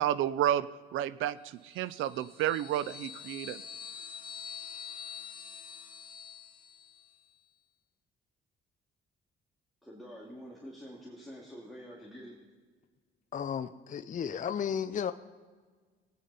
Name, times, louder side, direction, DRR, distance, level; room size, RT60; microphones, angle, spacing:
voice 1, 0.0-3.6, right 11 dB, 85° right, 17 dB, 0.5 m, -31 dB
sound 1, 1.7-7.1, left 7 dB, 25° left, 1.7 m, -46 dB
voice 2, 9.8-12.3, equal, ahead, -5 dB, 2.3 m, -47 dB
voice 3, 13.3-15.1, left 8 dB, 40° left, 10 dB, 0.6 m, -33 dB
17.5 x 9.2 x 4.1 m, 1.5 s
cardioid pair, 90°, 20 cm